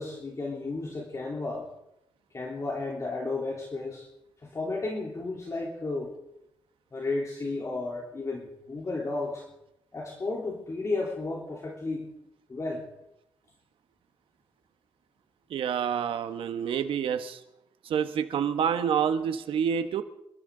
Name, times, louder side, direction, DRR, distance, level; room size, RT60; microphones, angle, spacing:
voice 1, 0.0-1.7 2.3-4.1 4.4-6.1 6.9-9.5 9.9-12.1 12.5-12.9, left 3 dB, 35° left, -2 dB, 3.4 m, -33 dB
voice 2, 15.5-17.4 17.9-20.0, right 8 dB, 85° right, 9 dB, 1.1 m, -28 dB
27.5 x 13.5 x 3.8 m, 0.83 s
cardioid pair, 90°, 9 cm